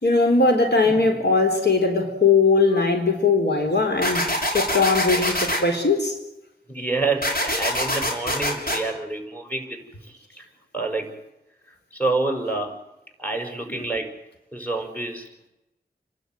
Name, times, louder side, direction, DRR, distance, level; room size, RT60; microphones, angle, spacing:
voice 1, 0.0-6.2 13.8-13.9, left 3 dB, 85° left, 4.1 m, -20 dB
sound 1, 4.0-5.6 7.2-8.8, equal, 60° left, 6.5 m, -24 dB
voice 2, 6.7-10.5 10.7-11.1 11.7-12.8 13.2-14.2 14.5-15.3, right 3 dB, 10° left, 6.1 m, -28 dB
30.0 x 12.0 x 9.5 m
wide cardioid pair, 55°, 17 cm